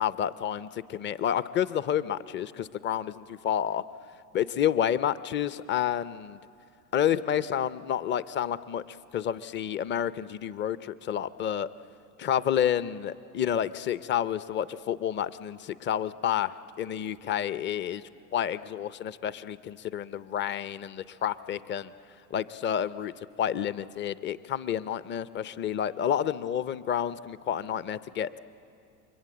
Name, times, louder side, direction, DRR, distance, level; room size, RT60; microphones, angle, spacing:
voice 1, 0.0-3.8 4.3-6.4 6.9-11.7 12.2-18.0 18.3-21.9 22.3-23.1 23.4-28.4, left 9 dB, 25° left, 17 dB, 0.6 m, -29 dB
29.5 x 23.5 x 7.7 m, 2.5 s
hypercardioid pair, 85°, 50 cm